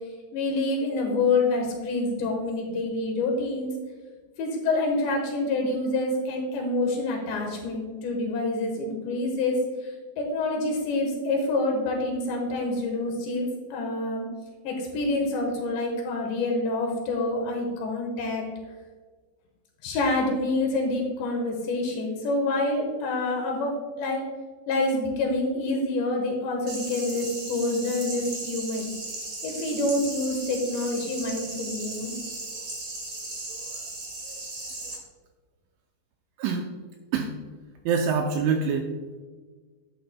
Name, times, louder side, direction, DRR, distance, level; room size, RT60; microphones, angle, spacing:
voice 1, 0.3-3.7 4.4-9.7 10.2-13.5 13.7-14.2 14.6-18.4 19.8-23.7 24.0-24.2 24.7-28.9 29.4-32.1, left 2 dB, 70° left, 1 dB, 3.0 m, -27 dB
sound 1, 26.7-34.9, right 2 dB, 50° right, 1.4 m, -36 dB
voice 2, 37.9-38.9, right 5 dB, 85° right, 3 dB, 2.7 m, -25 dB
11.0 x 9.5 x 2.2 m, 1.4 s
omnidirectional pair, 5.9 m